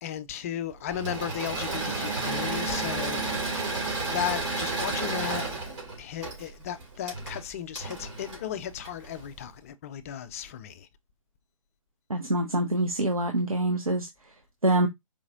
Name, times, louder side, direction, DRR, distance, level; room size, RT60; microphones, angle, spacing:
voice 1, 0.0-3.6 4.1-5.4 6.0-10.9, left 10 dB, 25° left, 0.4 m, -35 dB
Engine / Mechanisms, 0.9-9.3, right 3 dB, 60° right, 2.5 m, -32 dB
voice 2, 12.1-14.1 14.6-14.9, right 1 dB, 90° right, 0.8 m, -25 dB
4.8 x 2.9 x 2.6 m
figure-of-eight pair, 130°, 18 cm